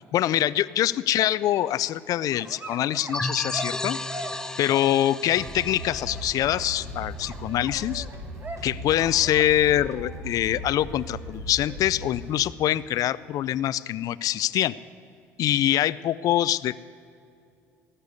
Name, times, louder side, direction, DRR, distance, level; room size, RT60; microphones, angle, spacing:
voice 1, 0.1-4.0 4.6-8.1 8.6-14.7 15.4-16.8, left 12 dB, 55° left, 18 dB, 0.5 m, -24 dB
sound 1, 1.4-3.2 3.5-4.6 5.5-12.8, right 2 dB, 25° right, 1.7 m, -44 dB
sound 2, 3.1-7.6, left 1 dB, 10° left, 0.6 m, -34 dB
sound 3, 5.2-12.2, equal, 50° right, 3.4 m, -38 dB
19.0 x 6.8 x 9.6 m, 2.5 s
hypercardioid pair, 70°, 7 cm